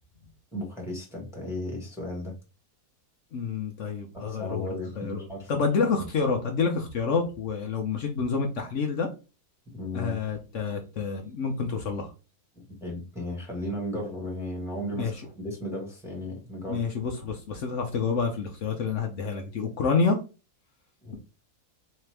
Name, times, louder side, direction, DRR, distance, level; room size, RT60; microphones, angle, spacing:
voice 1, 0.5-2.3 4.1-5.5 9.7-10.2 12.5-15.1 15.4-16.8 21.0-21.2, left 1 dB, ahead, -1 dB, 1.1 m, -35 dB
voice 2, 3.3-4.7 5.0-9.1 9.9-12.1 14.9-15.2 16.7-20.2, left 5 dB, 65° left, 3 dB, 0.7 m, -28 dB
4.2 x 2.8 x 3.3 m, 0.31 s
omnidirectional pair, 2.0 m